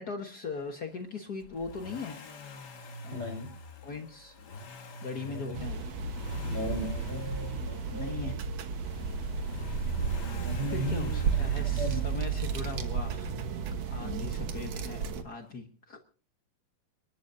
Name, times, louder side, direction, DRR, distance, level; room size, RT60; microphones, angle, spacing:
voice 1, 0.0-2.2 3.0-3.4 3.8-4.3 5.0-5.8 7.9-8.4 9.6-13.3 13.9-16.1, left 4 dB, 80° left, 4 dB, 0.8 m, -40 dB
Accelerating revving vroom, 1.4-13.3 14.6-14.7, left 3 dB, 50° left, 1.2 m, -46 dB
voice 2, 3.1-3.5 5.2-5.6 6.4-8.4 10.2-12.3 14.0-14.2, left 1 dB, 15° right, 4 dB, 4.7 m, -37 dB
sound 1, 5.5-15.2, right 6 dB, 60° right, 2.0 m, -33 dB
29.0 x 12.0 x 2.7 m, 0.37 s
omnidirectional pair, 4.0 m